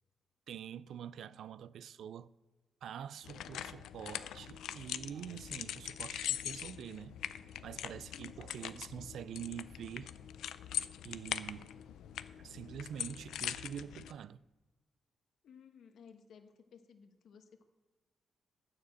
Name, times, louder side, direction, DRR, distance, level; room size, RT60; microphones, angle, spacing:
voice 1, 0.5-2.3 2.8-7.2 7.6-10.1 11.0-11.7 12.4-14.4, right 9 dB, 75° right, 0.3 m, -46 dB
sound 1, 3.2-14.1, left 11 dB, 90° left, 0.4 m, -42 dB
voice 2, 8.1-8.8 15.4-17.6, left 6 dB, 70° left, 1.2 m, -58 dB
9.5 x 6.7 x 7.7 m
cardioid pair, 105°, 0 cm